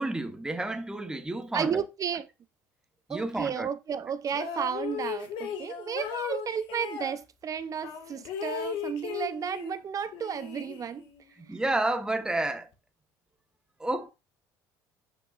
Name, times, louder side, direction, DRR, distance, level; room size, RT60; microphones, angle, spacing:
voice 1, 0.0-1.8 3.1-3.7 11.5-12.7 13.8-14.1, right 2 dB, 10° right, 1.2 m, -30 dB
voice 2, 1.5-2.3 3.1-11.1 11.4-11.6, right 7 dB, 40° right, 0.7 m, -33 dB
sound 1, 4.3-7.2 7.8-9.8 10.1-11.2, left 7 dB, 70° left, 1.8 m, -36 dB
8.9 x 5.4 x 2.5 m
supercardioid pair, 85°, 9 cm